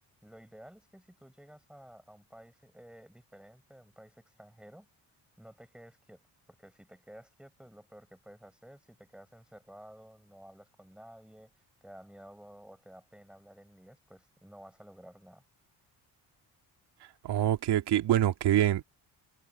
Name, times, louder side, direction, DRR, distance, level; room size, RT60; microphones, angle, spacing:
voice 1, 0.2-4.9 5.4-6.2 6.6-15.4, equal, ahead, 7.3 m, -53 dB
voice 2, 17.2-18.8, right 12 dB, 70° right, 2.2 m, -25 dB
cardioid pair, 175°, 42 cm